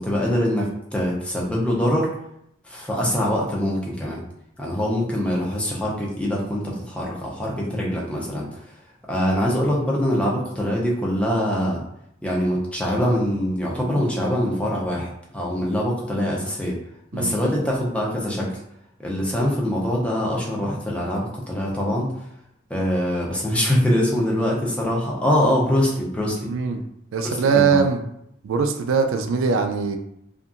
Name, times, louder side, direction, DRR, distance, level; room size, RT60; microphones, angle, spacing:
voice 1, 0.0-2.1 2.6-4.2 4.6-8.8 9.1-11.8 12.2-16.8 17.1-18.6 19.0-22.3 22.7-26.5 27.2-27.8, equal, 5° left, -4 dB, 0.5 m, -23 dB
voice 2, 26.5-26.8 27.1-28.0 28.4-30.0, right 5 dB, 85° right, 6 dB, 0.3 m, -21 dB
2.7 x 2.5 x 2.4 m, 0.76 s
head